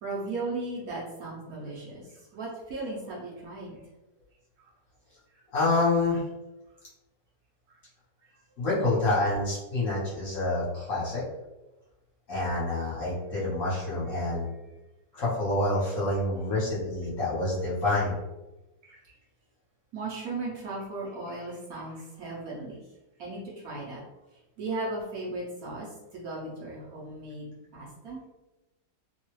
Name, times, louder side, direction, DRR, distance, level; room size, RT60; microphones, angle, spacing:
voice 1, 0.0-3.8 4.6-4.7 5.3-5.4 7.7-7.8 14.2-14.3 18.9-19.0 19.9-22.8 23.2-24.0 24.6-28.2, right 2 dB, 65° right, -5 dB, 1.1 m, -37 dB
voice 2, 5.5-6.2 8.6-11.2 12.3-14.5 15.1-18.2, left 2 dB, 50° left, -7 dB, 1.2 m, -27 dB
3.1 x 2.3 x 3.0 m, 1.0 s
omnidirectional pair, 1.9 m